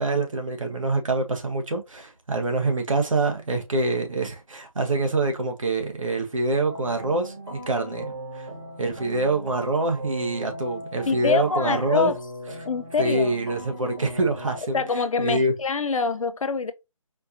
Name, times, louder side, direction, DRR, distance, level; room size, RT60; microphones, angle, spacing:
voice 1, 0.0-8.5 8.8-12.1 13.0-14.8 15.2-15.5, right 2 dB, 70° right, 1.1 m, -25 dB
sound 1, 6.7-14.6, right 1 dB, 50° right, 1.8 m, -38 dB
voice 2, 11.1-12.2 12.7-13.3 14.7-16.7, left 4 dB, 75° left, 0.5 m, -25 dB
4.4 x 2.5 x 2.8 m
figure-of-eight pair, 160°, 17 cm